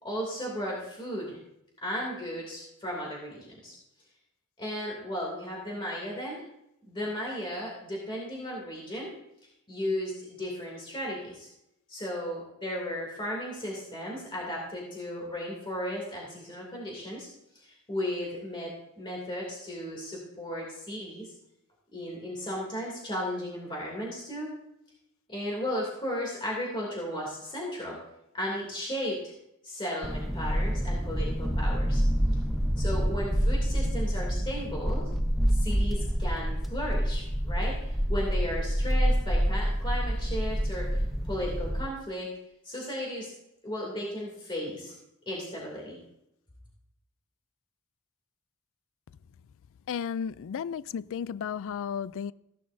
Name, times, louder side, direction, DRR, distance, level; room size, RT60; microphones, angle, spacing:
voice 1, 0.0-1.4 1.8-3.7 4.6-6.4 6.9-9.1 9.7-11.5 11.9-17.3 17.5-18.7 19.0-21.3 21.9-24.5 25.3-28.0 28.3-29.3 29.6-32.0 32.8-35.0 35.5-41.0 41.3-42.3 42.6-43.3 43.6-44.9 45.3-46.0, equal, 20° left, 2.8 m, -35 dB
sound 1, 30.0-41.8, equal, ahead, 0.7 m, -27 dB
voice 2, 49.9-52.3, left 7 dB, 60° left, 0.4 m, -33 dB
16.0 x 11.0 x 2.7 m
head